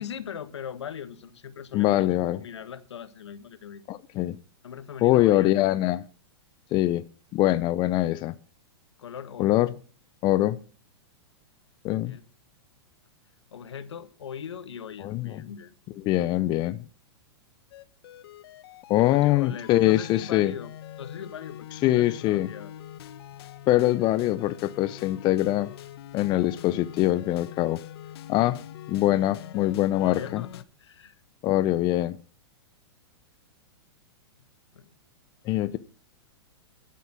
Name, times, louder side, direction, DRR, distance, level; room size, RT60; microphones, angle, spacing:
voice 1, 0.0-2.1 2.3-3.8 4.6-5.5 9.0-9.6 12.0-12.3 13.5-15.7 19.0-20.7 21.0-22.7 29.8-31.2 34.7-34.9, left 8 dB, 85° left, 1.5 m, -40 dB
voice 2, 1.7-2.4 3.9-4.4 5.0-6.0 6.7-7.0 7.3-8.4 9.4-9.7 10.2-10.6 11.8-12.2 15.0-15.4 16.0-16.8 18.9-20.5 21.8-22.5 23.7-25.7 26.1-27.8 28.3-28.6 28.9-30.4 31.4-32.2 35.4-35.8, left 15 dB, 35° left, 0.7 m, -23 dB
sound 1, 17.7-30.6, left 11 dB, 65° left, 1.1 m, -44 dB
12.5 x 8.5 x 7.4 m
hypercardioid pair, 125°, 14 cm